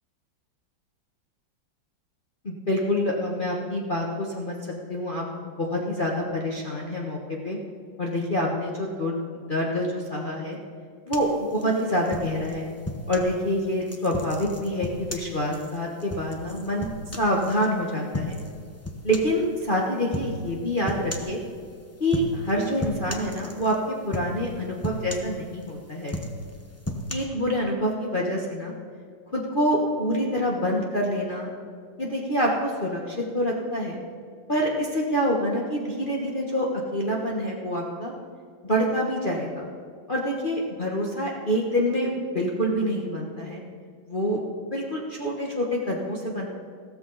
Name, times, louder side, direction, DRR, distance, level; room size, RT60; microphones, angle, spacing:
voice 1, 2.4-7.6 8.0-10.6 11.1-12.7 13.1-16.9 17.1-18.4 19.0-21.4 22.0-26.2 27.1-28.7 29.3-31.5 32.0-34.0 34.5-38.1 38.6-39.7 40.1-43.6 44.1-44.4 44.7-46.5, equal, 30° left, -3 dB, 1.3 m, -26 dB
sound 1, 11.1-13.3 13.9-17.7 18.1-18.5 18.8-19.4 20.1-20.4 20.9-21.4 22.0-22.5 22.8-23.8 24.1-24.5 24.8-25.7 26.0-27.1, left 1 dB, 15° left, 0.6 m, -34 dB
15.5 x 13.5 x 4.0 m, 2.2 s
omnidirectional pair, 2.1 m